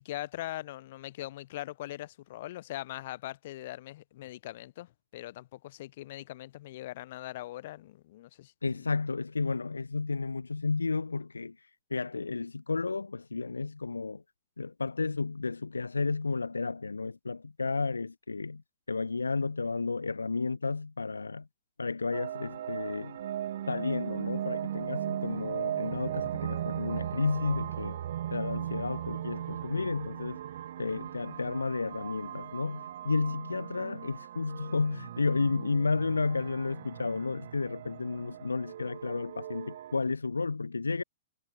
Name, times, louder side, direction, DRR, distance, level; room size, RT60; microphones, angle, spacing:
voice 1, 0.0-8.9, left 15 dB, 50° left, 3.0 m, -41 dB
voice 2, 8.6-14.2 14.6-18.6 18.9-21.5 21.8-23.2 23.7-28.0 28.3-30.4 30.8-41.0, left 4 dB, 80° left, 1.6 m, -32 dB
sound 1, 22.1-40.0, right 11 dB, 55° right, 0.7 m, -38 dB
figure-of-eight pair, 105°, 0 cm